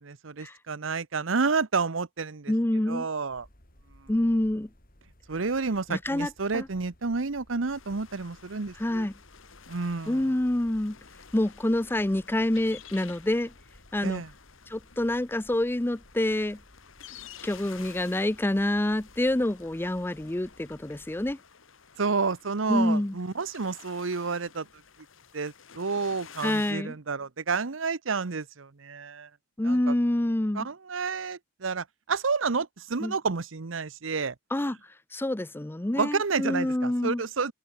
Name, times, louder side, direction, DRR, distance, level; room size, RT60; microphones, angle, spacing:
voice 1, 0.2-2.5 2.9-3.5 4.0-4.1 5.3-9.1 9.7-10.3 14.0-14.3 22.0-24.7 25.3-29.3 29.6-29.9 30.5-34.3 36.0-37.5, right 4 dB, 80° right, 0.9 m, -30 dB
voice 2, 2.5-3.1 4.1-4.7 5.9-6.7 8.8-9.1 10.1-11.0 11.3-13.5 13.9-14.2 14.7-16.6 17.4-21.4 22.7-23.1 26.4-26.9 29.6-30.7 33.0-33.1 34.5-34.8 35.1-37.2, left 1 dB, 10° left, 0.5 m, -27 dB
sound 1, 3.3-21.3, equal, 45° left, 6.8 m, -58 dB
sound 2, 7.7-26.7, left 7 dB, 90° left, 1.8 m, -51 dB
open air
head